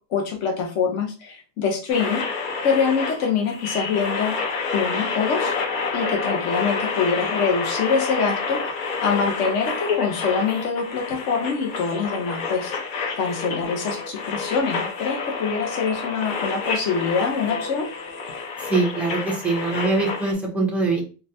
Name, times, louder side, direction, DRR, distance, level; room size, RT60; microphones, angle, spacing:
voice 1, 0.1-2.2 2.6-4.4 4.7-5.5 5.9-12.7 13.2-17.9, left 5 dB, 40° left, 2 dB, 0.7 m, -24 dB
sound 1, 1.9-20.3, left 4 dB, 65° left, 0.9 m, -28 dB
voice 2, 18.7-21.0, right 3 dB, 5° right, -2 dB, 0.4 m, -23 dB
3.8 x 2.2 x 2.6 m, 0.35 s
cardioid pair, 170°, 41 cm